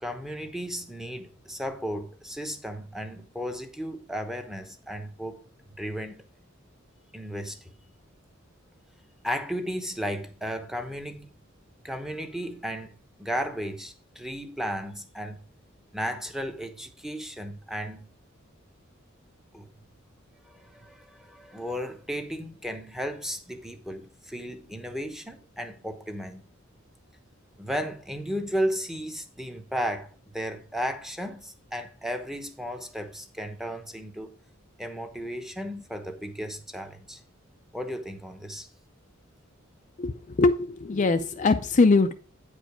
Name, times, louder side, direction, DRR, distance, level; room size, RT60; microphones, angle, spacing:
voice 1, 0.0-5.5 5.8-6.3 7.1-7.7 9.2-11.3 11.8-15.4 15.9-18.1 19.5-19.6 20.4-26.4 27.6-34.3 34.8-37.2 37.7-38.7, equal, ahead, 0.9 m, -34 dB
voice 2, 40.4-42.1, left 3 dB, 40° left, 0.4 m, -21 dB
8.9 x 5.0 x 4.9 m
head